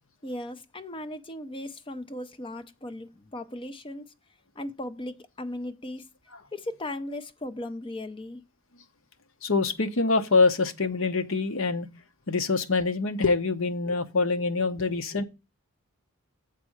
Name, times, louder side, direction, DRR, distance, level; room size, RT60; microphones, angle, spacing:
voice 1, 0.2-4.0 4.6-6.1 6.5-8.4, left 1 dB, 25° left, 0.6 m, -37 dB
voice 2, 9.4-11.9 12.3-15.2, left 3 dB, 60° left, 0.9 m, -25 dB
7.5 x 4.2 x 6.3 m
head